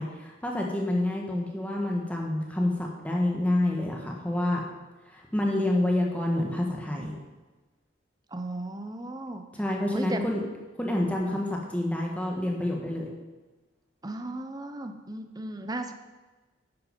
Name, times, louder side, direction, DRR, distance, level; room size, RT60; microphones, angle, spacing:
voice 1, 0.0-4.6 5.1-7.2 9.5-10.4 10.8-13.1, left 1 dB, 5° left, -1 dB, 1.3 m, -28 dB
voice 2, 8.3-9.4 9.9-10.2 11.2-11.4 14.0-15.9, right 2 dB, 20° right, 7 dB, 0.6 m, -35 dB
10.5 x 8.6 x 5.2 m, 1.2 s
head